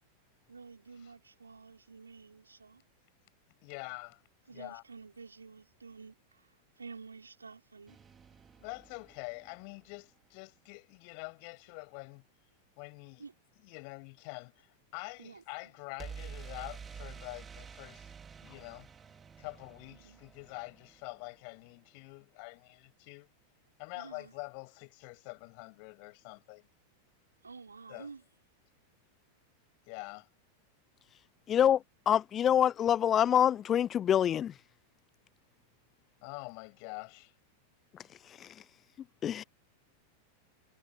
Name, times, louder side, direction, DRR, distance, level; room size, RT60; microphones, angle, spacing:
voice 1, 0.5-2.8 4.5-6.5 6.8-8.0 13.2-13.3 15.2-15.4 19.9-20.2 23.9-24.3 27.4-28.2, right 4 dB, 75° right, 4.5 m, -50 dB
voice 2, 3.6-4.2 4.5-4.8 8.6-12.2 12.8-13.2 13.6-18.1 18.4-18.9 19.4-23.3 23.8-26.7 27.9-28.1 29.9-30.3 36.2-37.3, left 40 dB or more, 45° left, 7.8 m, -46 dB
sound 1, 7.9-9.9 16.0-21.8, right 6 dB, 20° right, 4.0 m, -49 dB
voice 3, 31.5-31.8 32.1-34.5 38.4-38.5 39.2-39.4, left 10 dB, 25° left, 0.7 m, -25 dB
figure-of-eight pair, 90°, 0 cm